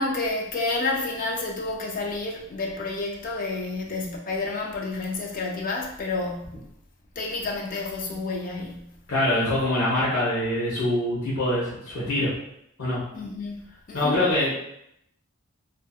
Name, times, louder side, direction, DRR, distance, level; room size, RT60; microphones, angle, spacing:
voice 1, 0.0-6.6 7.2-8.9 13.1-14.2, left 3 dB, 40° left, -1 dB, 0.4 m, -30 dB
voice 2, 9.1-12.3 12.8-13.0 13.9-14.5, left 1 dB, 85° left, -8 dB, 1.0 m, -24 dB
2.6 x 2.5 x 2.3 m, 0.76 s
head